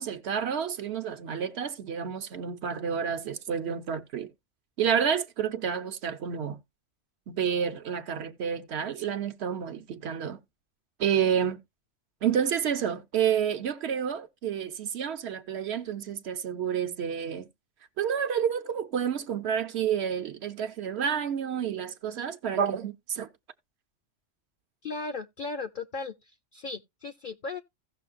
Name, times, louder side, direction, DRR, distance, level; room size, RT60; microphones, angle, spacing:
voice 1, 0.0-4.3 4.8-6.6 7.3-10.4 11.0-11.6 12.2-17.5 18.0-23.3, right 8 dB, 70° right, 0.9 m, -29 dB
voice 2, 24.8-27.6, left 4 dB, 55° left, 0.7 m, -36 dB
16.0 x 6.2 x 2.4 m
omnidirectional pair, 1.2 m